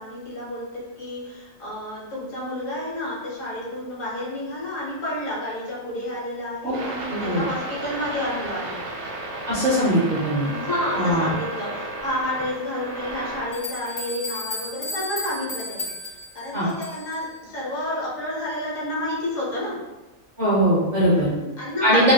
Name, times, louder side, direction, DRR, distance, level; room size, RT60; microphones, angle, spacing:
voice 1, 0.0-8.8 10.4-19.8 21.1-22.1, left 1 dB, 75° left, -5 dB, 1.4 m, -30 dB
sound 1, 6.7-13.4, right 2 dB, 75° right, 0.9 m, -33 dB
voice 2, 7.1-7.5 9.5-10.5 10.9-11.3 16.5-16.7 20.4-21.3 21.8-22.1, equal, 50° right, -7 dB, 0.5 m, -20 dB
sound 2, 13.1-13.2 13.5-17.2, left 2 dB, 35° left, 0.5 m, -34 dB
3.0 x 2.3 x 2.7 m, 1.1 s
omnidirectional pair, 1.4 m